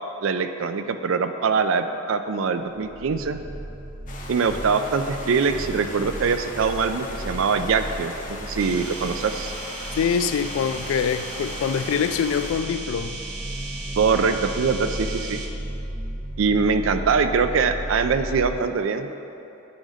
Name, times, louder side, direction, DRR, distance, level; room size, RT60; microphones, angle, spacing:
voice 1, 0.2-3.4 4.3-9.5 14.0-15.4 16.4-19.1, right 5 dB, 70° right, 9 dB, 0.4 m, -23 dB
sound 1, 2.7-18.6, right 1 dB, 40° right, 0.7 m, -35 dB
sound 2, 4.1-12.5, left 2 dB, 40° left, 0.8 m, -39 dB
sound 3, 8.6-15.5, right 3 dB, 90° right, 0.9 m, -36 dB
voice 2, 10.0-13.2, left 7 dB, 80° left, 13 dB, 0.3 m, -24 dB
10.0 x 3.9 x 5.0 m, 2.9 s
head